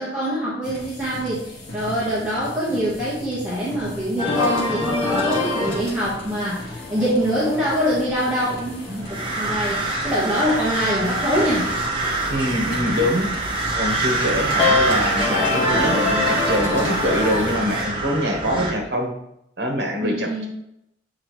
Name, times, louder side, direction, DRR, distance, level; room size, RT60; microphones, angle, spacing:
voice 1, 0.0-11.7 20.0-20.5, equal, 5° right, -10 dB, 1.3 m, -24 dB
sound 1, 0.6-17.8, left 2 dB, 75° left, 1.9 m, -38 dB
sound 2, 4.2-17.4, left 3 dB, 30° left, 1.5 m, -27 dB
sound 3, 9.0-18.7, right 2 dB, 25° right, 0.9 m, -25 dB
voice 2, 12.3-13.3 13.7-19.1 19.6-20.5, equal, 60° right, 2 dB, 1.3 m, -24 dB
7.3 x 4.3 x 3.2 m, 0.80 s
head